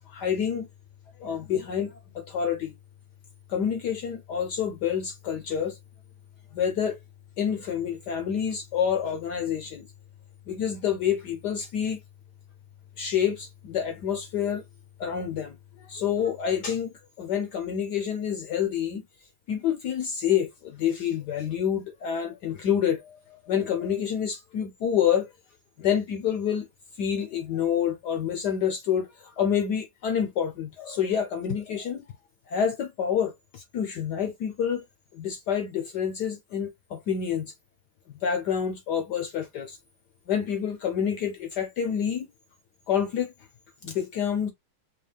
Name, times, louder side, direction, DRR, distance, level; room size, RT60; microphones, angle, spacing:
voice 1, 0.1-0.7 1.2-2.7 3.5-5.8 6.5-7.0 7.4-9.9 10.5-12.0 13.0-14.6 15.0-19.0 19.5-25.3 25.8-26.7 27.0-32.0 32.5-34.8 35.1-37.5 38.2-39.8 40.3-42.3 42.9-43.3 43.8-44.5, left 8 dB, 70° left, 1.0 m, -28 dB
4.5 x 2.3 x 3.3 m
omnidirectional pair, 2.4 m